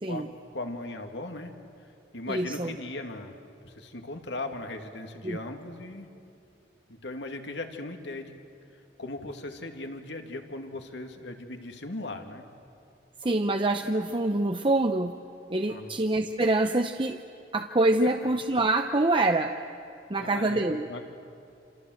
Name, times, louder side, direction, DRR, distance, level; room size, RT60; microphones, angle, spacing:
voice 1, 0.5-1.5 2.1-3.4 3.6-6.1 6.9-8.3 9.0-12.4 15.7-16.0 20.2-21.0, left 2 dB, 75° left, 5 dB, 2.2 m, -38 dB
voice 2, 2.3-2.8 5.2-5.4 13.2-15.2 15.5-17.2 17.5-19.6 20.1-20.9, right 2 dB, 30° right, 6 dB, 0.7 m, -25 dB
27.5 x 27.0 x 7.8 m, 2.6 s
head